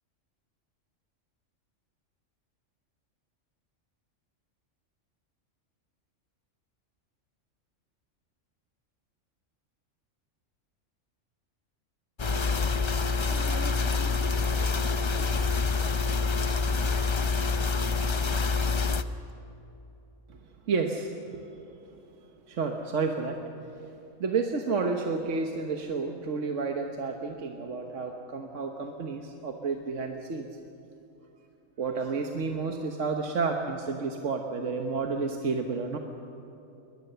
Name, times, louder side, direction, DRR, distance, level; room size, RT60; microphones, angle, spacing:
sound 1, 12.2-19.0, left 4 dB, 35° left, 0.5 m, -26 dB
voice 1, 13.3-15.5, right 1 dB, 10° right, 3 dB, 1.5 m, -43 dB
voice 2, 20.7-21.4 22.5-23.4 24.2-30.5 31.8-36.0, right 4 dB, 70° right, 3 dB, 1.5 m, -31 dB
22.0 x 20.5 x 6.9 m, 2.9 s
omnidirectional pair, 1.3 m